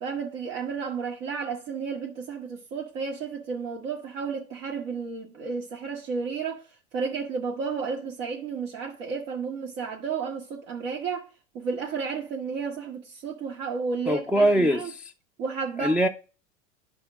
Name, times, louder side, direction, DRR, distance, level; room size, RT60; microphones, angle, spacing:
voice 1, 0.0-6.6 6.9-11.3 11.5-14.9 15.4-16.0, right 5 dB, 60° right, 1.5 m, -32 dB
voice 2, 14.1-15.1 15.8-16.1, equal, 5° right, 0.3 m, -22 dB
10.5 x 3.5 x 6.0 m
hypercardioid pair, 100°, 37 cm